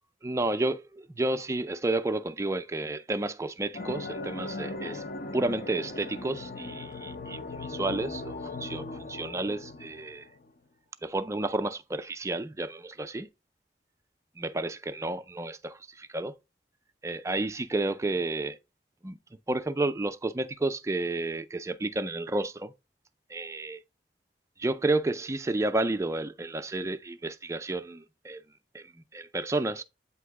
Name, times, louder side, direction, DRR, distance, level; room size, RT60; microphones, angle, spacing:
voice 1, 0.2-5.0 5.3-10.2 11.0-13.3 14.4-16.3 17.0-18.6 19.0-19.2 19.5-22.7 23.3-23.8 24.6-28.4 28.7-29.8, right 2 dB, 15° right, 0.4 m, -31 dB
sound 1, 3.7-10.5, left 2 dB, 50° left, 0.7 m, -38 dB
8.4 x 2.9 x 4.7 m
head